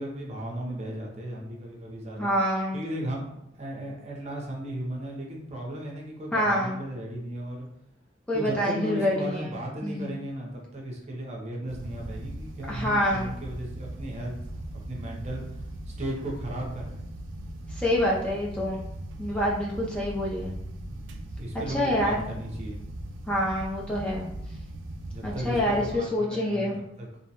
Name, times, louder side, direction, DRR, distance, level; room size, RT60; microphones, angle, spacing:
voice 1, 0.0-2.3 2.7-3.3 3.5-7.7 8.3-14.4 14.7-15.6 16.0-17.0 20.9-22.8 25.1-26.7 27.0-27.1, right 1 dB, 35° right, -1 dB, 0.6 m, -36 dB
voice 2, 2.2-2.8 6.3-6.8 8.3-9.5 9.8-10.1 12.7-13.3 17.7-18.8 19.2-20.5 21.7-22.2 23.3-24.3 25.2-26.8, equal, 5° left, -5 dB, 0.3 m, -26 dB
sound 1, 11.7-25.9, right 1 dB, 80° right, 0.3 m, -39 dB
2.6 x 2.1 x 2.8 m, 0.80 s
head